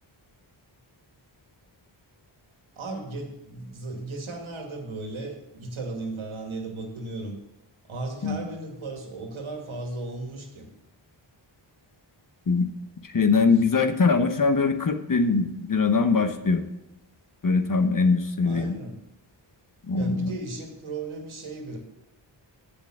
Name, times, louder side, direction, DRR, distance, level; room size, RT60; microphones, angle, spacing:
voice 1, 2.8-7.3 7.8-10.7 18.4-19.0 19.9-21.8, right 2 dB, 80° right, 2 dB, 2.4 m, -36 dB
voice 2, 13.0-16.7 17.4-18.8 19.9-20.3, left 4 dB, 40° left, 8 dB, 1.1 m, -22 dB
8.0 x 7.0 x 7.5 m, 0.91 s
cardioid pair, 65°, 48 cm